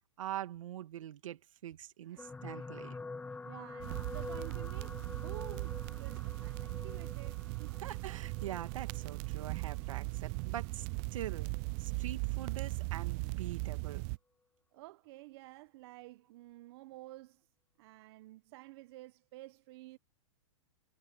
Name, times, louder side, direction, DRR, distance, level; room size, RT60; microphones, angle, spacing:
voice 1, 0.2-3.0 7.8-10.9 11.1-11.5 11.8-14.0, right 12 dB, 70° right, 2.3 m, -43 dB
voice 2, 2.0-2.7 3.4-7.8 14.7-17.5 17.8-20.0, right 19 dB, 50° right, 1.0 m, -52 dB
sound 1, 2.2-10.6 11.4-11.6 11.9-12.0, left 3 dB, 10° left, 1.3 m, -48 dB
sound 2, 3.8-14.2, right 31 dB, 35° right, 0.3 m, -38 dB
hypercardioid pair, 135°, 17 cm